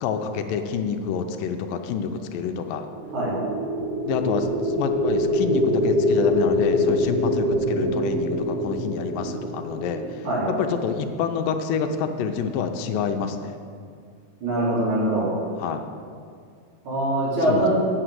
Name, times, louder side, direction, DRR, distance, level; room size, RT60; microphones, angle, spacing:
voice 1, 0.0-2.9 4.1-13.6 15.6-15.8 17.5-17.7, left 6 dB, 80° left, 6 dB, 2.2 m, -27 dB
sound 1, 2.9-11.0, left 1 dB, 65° right, 3.1 m, -24 dB
voice 2, 14.4-15.3 16.8-17.7, right 1 dB, 35° right, -8 dB, 3.7 m, -23 dB
9.0 x 6.5 x 7.7 m, 2.3 s
omnidirectional pair, 4.1 m